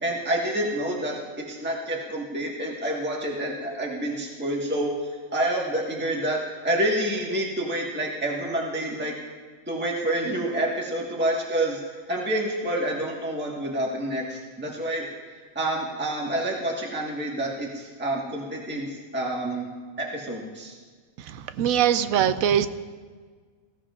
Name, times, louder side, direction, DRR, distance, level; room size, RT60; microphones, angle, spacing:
voice 1, 0.0-9.1 9.7-15.1 15.5-19.7 20.0-20.8, right 1 dB, 10° right, -2 dB, 1.5 m, -28 dB
voice 2, 21.3-22.7, right 9 dB, 75° right, 11 dB, 1.0 m, -22 dB
18.0 x 16.0 x 2.5 m, 1.5 s
omnidirectional pair, 1.5 m